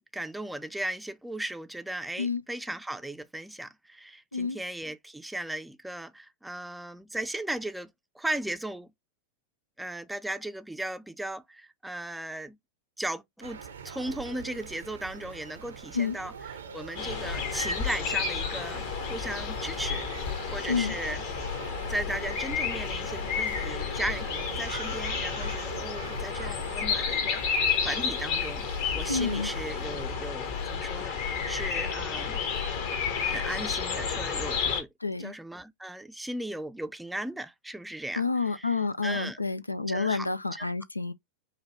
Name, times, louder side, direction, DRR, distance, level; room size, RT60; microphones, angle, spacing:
voice 1, 0.1-8.9 9.8-12.6 13.0-16.3 16.7-21.2 21.9-28.7 28.9-32.4 33.2-34.9 35.2-38.8 39.0-39.4 39.9-40.7, right 1 dB, 5° right, 0.5 m, -37 dB
sound 1, 13.4-29.7, right 6 dB, 70° right, 0.7 m, -43 dB
sound 2, 17.0-34.8, left 6 dB, 50° left, 1.2 m, -31 dB
voice 2, 29.1-29.5 35.0-35.3 38.2-41.1, left 4 dB, 85° left, 0.3 m, -29 dB
5.5 x 2.3 x 3.3 m
figure-of-eight pair, 90°, 0 cm